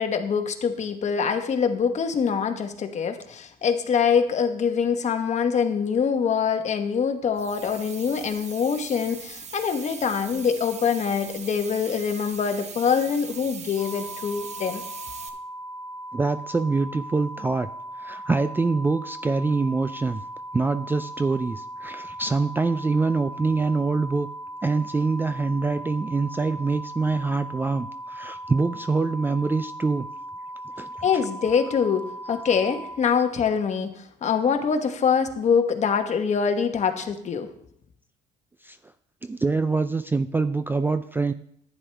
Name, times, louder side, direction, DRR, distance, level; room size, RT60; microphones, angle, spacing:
voice 1, 0.0-14.8 31.0-37.5, left 6 dB, 45° left, 7 dB, 1.2 m, -24 dB
sound 1, 7.4-15.3, right 6 dB, 40° right, 1.0 m, -40 dB
sound 2, 13.8-33.0, right 1 dB, 75° right, 1.9 m, -38 dB
voice 2, 16.1-17.7 18.0-20.2 20.5-24.3 24.6-30.1 30.8-31.1 38.6-38.8 39.2-41.3, right 3 dB, 10° right, 11 dB, 0.3 m, -25 dB
11.0 x 9.8 x 3.4 m, 0.69 s
cardioid pair, 110°, 17 cm